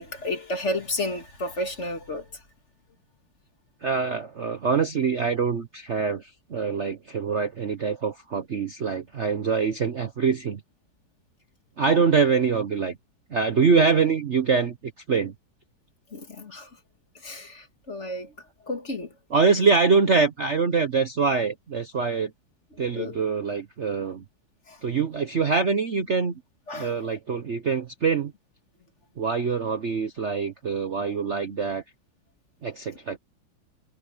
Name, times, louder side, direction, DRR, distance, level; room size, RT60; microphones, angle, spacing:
voice 1, 0.0-2.2 16.1-16.7 17.2-18.3 18.7-19.1 22.9-23.2 24.7-24.8 26.7-26.9, left 1 dB, 35° left, 2.2 m, -31 dB
voice 2, 3.8-10.6 11.8-12.9 13.3-14.8 15.1-15.3 19.3-22.3 22.8-24.2 24.8-26.4 26.7-28.3 29.2-31.8 32.6-33.2, right 5 dB, 45° right, 1.0 m, -24 dB
omnidirectional pair, 2.2 m